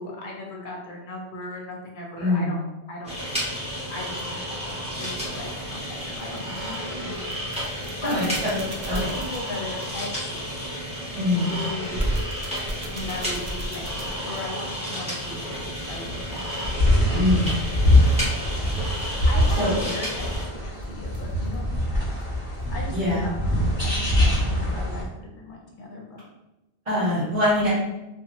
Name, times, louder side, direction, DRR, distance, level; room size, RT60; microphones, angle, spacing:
voice 1, 0.0-3.2 3.9-7.2 7.9-8.4 8.9-10.6 11.5-12.0 12.8-17.2 19.2-22.1 22.7-26.2, left 2 dB, 55° left, -1 dB, 0.7 m, -37 dB
voice 2, 2.2-2.5 8.0-8.6 8.8-9.0 11.1-11.5 17.1-17.4 19.5-19.7 22.9-23.3 26.8-27.7, left 1 dB, 35° right, -12 dB, 1.2 m, -23 dB
sound 1, 3.0-20.4, equal, 5° right, 0.8 m, -32 dB
sound 2, 4.1-4.3 6.0-6.8 7.2-10.1 11.8-14.5 17.0-17.6 20.1-21.7 22.1-22.2 22.6-22.8, right 1 dB, 65° right, 0.7 m, -35 dB
sound 3, 15.6-25.0, left 1 dB, 10° left, 1.4 m, -23 dB
2.9 x 2.2 x 2.7 m, 0.98 s
omnidirectional pair, 1.1 m